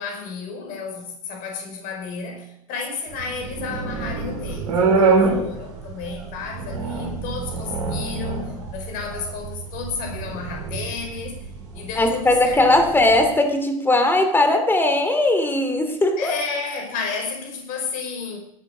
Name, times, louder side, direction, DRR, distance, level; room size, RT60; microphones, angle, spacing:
voice 1, 0.0-11.4 11.7-12.9 16.2-18.4, left 5 dB, 50° left, 3 dB, 5.2 m, -32 dB
sound 1, 3.1-13.3, right 4 dB, 70° right, 4.5 m, -26 dB
voice 2, 12.0-16.3, left 2 dB, 10° left, 6 dB, 2.9 m, -19 dB
18.0 x 11.0 x 5.1 m, 0.71 s
figure-of-eight pair, 80°, 18 cm